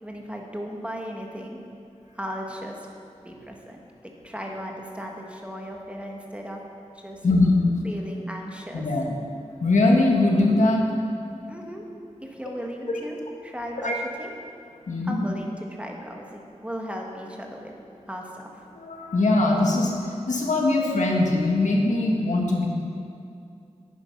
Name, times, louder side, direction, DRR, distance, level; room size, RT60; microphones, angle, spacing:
voice 1, 0.0-1.6 2.1-2.8 3.2-6.6 6.9-7.2 7.8-8.8 11.5-11.9 12.2-13.9 14.2-14.3 15.1-17.7 18.1-18.5, equal, 10° right, 0 dB, 1.5 m, -36 dB
voice 2, 7.2-7.9 8.7-9.1 9.6-10.9 12.9-13.0 13.8-13.9 14.9-15.2 18.7-19.9 20.3-22.7, left 2 dB, 85° left, -1 dB, 1.5 m, -21 dB
9.9 x 8.6 x 5.8 m, 2.5 s
wide cardioid pair, 65°, 12 cm